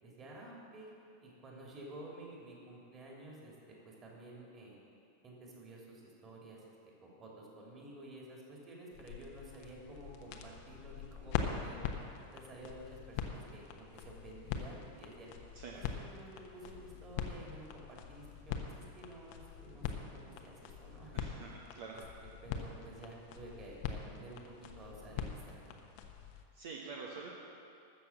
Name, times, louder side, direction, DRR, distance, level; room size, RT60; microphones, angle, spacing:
voice 1, 0.0-0.9 1.2-4.8 5.2-6.6 7.0-11.9 12.3-15.3 15.7-21.2 21.9-22.0 22.4-25.8, right 1 dB, 25° right, -2 dB, 3.1 m, -51 dB
sound 1, 8.9-26.4, left 7 dB, 45° left, 1.0 m, -43 dB
voice 2, 21.1-22.0 26.5-27.3, right 5 dB, 55° right, -2 dB, 1.2 m, -46 dB
14.0 x 6.6 x 7.3 m, 2.5 s
figure-of-eight pair, 90°, 0 cm